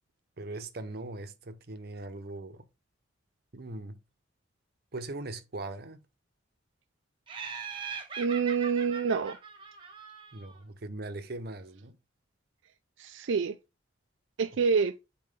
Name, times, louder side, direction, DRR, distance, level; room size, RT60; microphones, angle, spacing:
voice 1, 0.4-2.6 3.5-4.0 4.9-6.0 10.3-12.0, right 2 dB, 50° right, 0.8 m, -40 dB
Laughter, 7.3-10.6, right 6 dB, 25° right, 1.4 m, -41 dB
voice 2, 8.2-9.4 13.0-13.6 14.4-14.9, right 5 dB, 70° right, 0.4 m, -27 dB
7.5 x 4.3 x 3.6 m
head